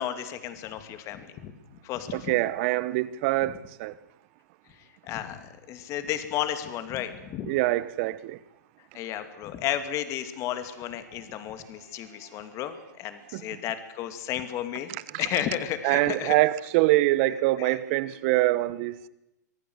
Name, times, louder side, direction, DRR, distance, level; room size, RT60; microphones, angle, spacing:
voice 1, 0.0-1.5 1.8-2.4 5.0-7.5 8.9-14.9 15.2-16.4 17.6-17.8, left 11 dB, 30° left, 2.6 m, -33 dB
voice 2, 2.1-3.9 7.5-8.4 13.3-13.4 15.1-15.2 15.8-19.1, right 18 dB, 40° right, 1.2 m, -24 dB
24.5 x 18.0 x 8.1 m
hypercardioid pair, 135°, 10 cm